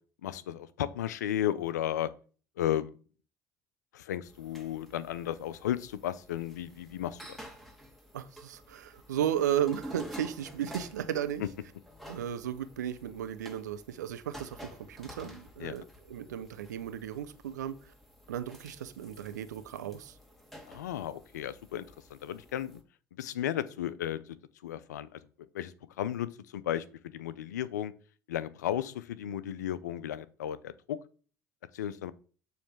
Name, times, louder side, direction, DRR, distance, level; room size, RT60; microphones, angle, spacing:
voice 1, 0.2-2.1 2.6-2.9 3.9-7.4 15.6-15.7 20.7-21.9 22.1-22.8 23.2-24.4 24.6-25.2 25.5-26.8 27.1-27.9 28.3-31.0 31.7-32.1, left 11 dB, 85° left, 0.5 m, -34 dB
sound 1, 4.2-22.8, equal, ahead, 1.7 m, -51 dB
voice 2, 8.1-11.4 12.1-17.9 18.3-20.1, right 10 dB, 85° right, 0.6 m, -35 dB
7.1 x 3.3 x 5.9 m
hypercardioid pair, 70°, 9 cm